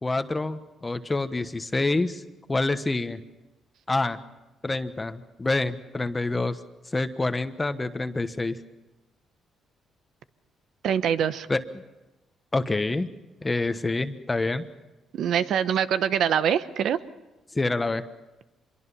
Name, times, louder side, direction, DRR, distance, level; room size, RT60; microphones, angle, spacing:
voice 1, 0.0-2.2 2.5-3.2 3.9-4.2 4.6-6.6 6.9-8.6 11.5-11.6 12.5-13.1 13.4-14.6 17.5-18.0, left 2 dB, 20° left, 10 dB, 1.2 m, -27 dB
voice 2, 10.8-11.5 15.1-17.0, right 8 dB, 70° right, 13 dB, 1.0 m, -24 dB
25.5 x 23.0 x 5.7 m, 1.1 s
cardioid pair, 90°, 0 cm